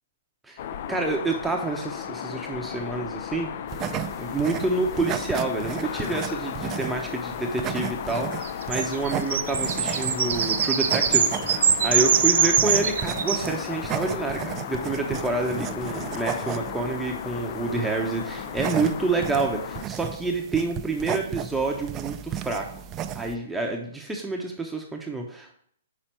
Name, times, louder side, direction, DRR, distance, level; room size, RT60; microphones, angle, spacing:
sound 1, 0.6-19.9, left 9 dB, 55° left, 0.4 m, -35 dB
voice 1, 0.9-3.5 3.9-22.7 23.1-25.5, right 3 dB, 5° right, 0 dB, 0.8 m, -28 dB
sound 2, 3.7-23.3, right 10 dB, 25° right, 0.4 m, -35 dB
sound 3, 8.4-13.5, right 7 dB, 70° right, 0.6 m, -23 dB
5.7 x 4.4 x 4.4 m, 0.64 s
hypercardioid pair, 130°, 0 cm